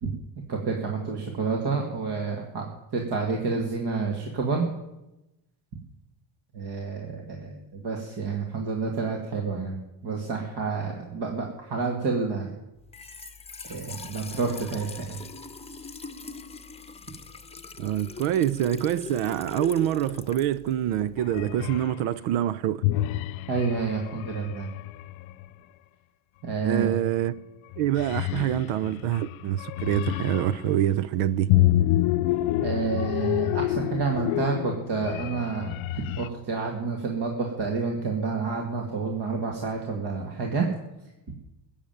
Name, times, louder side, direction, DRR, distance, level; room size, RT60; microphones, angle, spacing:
voice 1, 0.5-4.7 6.5-12.5 13.6-15.2 23.5-24.7 26.4-27.0 32.6-40.7, right 4 dB, 55° right, 2.3 m, -29 dB
Trickle dribble / Fill (with liquid), 12.8-21.6, left 4 dB, 10° left, 0.9 m, -42 dB
voice 2, 17.8-22.8 26.6-27.3 27.8-31.5, right 11 dB, 75° right, 0.7 m, -26 dB
sound 1, 21.2-22.0 22.8-25.5 27.1-27.4 27.7-30.7 31.5-36.3, left 15 dB, 75° left, 0.7 m, -28 dB
15.0 x 7.4 x 9.2 m
supercardioid pair, 95°, 49 cm